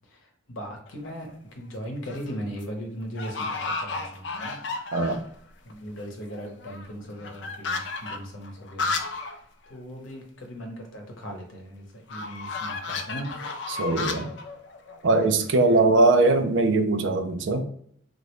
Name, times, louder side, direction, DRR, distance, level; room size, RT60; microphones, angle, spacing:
voice 1, 0.1-4.6 5.6-8.9 9.2-9.3 9.7-13.7, equal, 80° left, 0.9 m, -38 dB
sound 1, 0.9-1.3 1.8-2.3 2.6-2.7 3.2-5.3 5.7-5.8 6.0-9.4 9.7-9.8 10.1-10.2 12.1-15.8, left 3 dB, 60° left, 0.4 m, -33 dB
voice 2, 4.9-5.2 13.7-14.3 15.0-17.6, right 2 dB, 70° right, 0.4 m, -21 dB
3.0 x 2.5 x 3.0 m
head